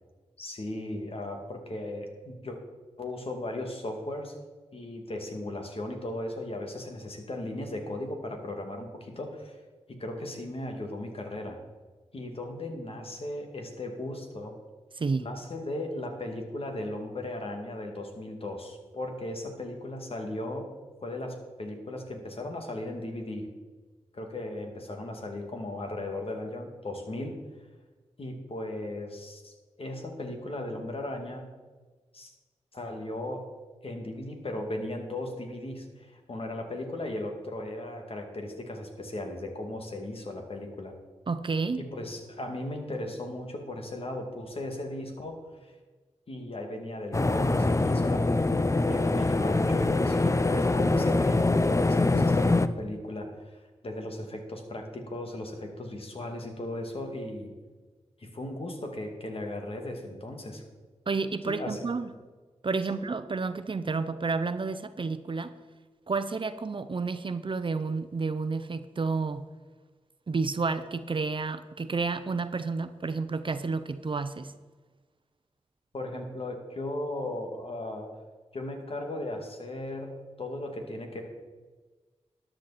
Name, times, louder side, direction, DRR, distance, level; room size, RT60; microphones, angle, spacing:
voice 1, 0.4-2.6 3.0-4.4 4.7-9.6 9.9-11.6 12.1-14.6 15.2-20.7 21.0-23.5 24.1-27.4 28.2-29.5 29.8-31.4 32.1-32.3 32.7-33.5 33.8-40.9 41.8-45.7 46.3-52.5 52.7-57.5 58.2-60.6 61.5-61.9 75.9-78.1 78.5-81.2, left 1 dB, 55° left, 3 dB, 2.3 m, -37 dB
voice 2, 41.3-41.9 61.1-62.1 62.6-65.5 66.1-69.5 70.3-74.5, right 4 dB, 45° right, 11 dB, 0.7 m, -30 dB
sound 1, 47.1-52.7, left 2 dB, 25° left, 0.6 m, -24 dB
13.0 x 10.0 x 4.2 m, 1.3 s
cardioid pair, 50°, 12 cm